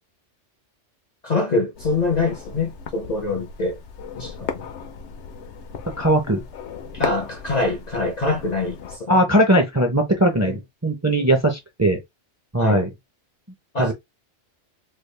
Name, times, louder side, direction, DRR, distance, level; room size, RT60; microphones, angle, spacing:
voice 1, 1.2-3.8 4.2-4.7 6.9-9.2 10.4-10.6 12.6-12.8 13.7-13.9, left 3 dB, 45° left, 0.6 m, -24 dB
sound 1, 1.7-9.0, left 6 dB, 70° left, 0.9 m, -36 dB
voice 2, 6.0-6.4 9.1-12.0 12.5-12.9 13.8-13.9, right 1 dB, 20° right, 0.5 m, -19 dB
3.4 x 2.3 x 3.2 m
omnidirectional pair, 1.2 m